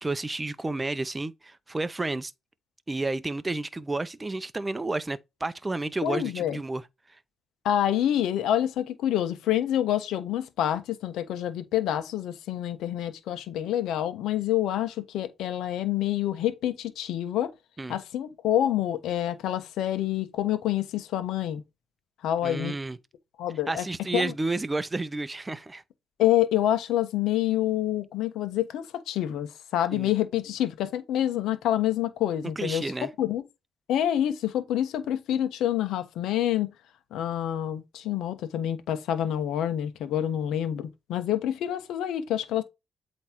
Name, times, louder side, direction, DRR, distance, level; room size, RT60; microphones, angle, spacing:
voice 1, 0.0-2.3 2.9-6.8 17.8-18.0 22.4-23.0 23.7-25.8 29.9-30.1 32.6-33.1, right 2 dB, 20° right, 0.6 m, -31 dB
voice 2, 6.0-6.6 7.6-17.5 17.9-21.6 22.2-22.7 23.4-23.8 24.1-24.3 26.2-33.4 33.9-36.7 37.1-42.6, left 11 dB, 85° left, 1.2 m, -27 dB
8.1 x 3.2 x 4.5 m
cardioid pair, 90°, 0 cm